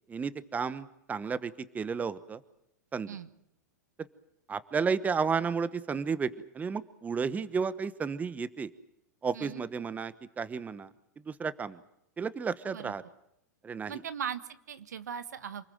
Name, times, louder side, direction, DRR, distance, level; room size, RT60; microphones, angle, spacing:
voice 1, 0.1-2.4 2.9-3.1 4.5-8.7 9.2-10.9 11.3-11.8 12.2-13.0 13.6-14.0, right 5 dB, 15° right, 16 dB, 1.1 m, -32 dB
voice 2, 13.9-15.7, right 8 dB, 75° right, 13 dB, 1.5 m, -39 dB
28.0 x 20.5 x 7.8 m, 0.80 s
hypercardioid pair, 105°, 9 cm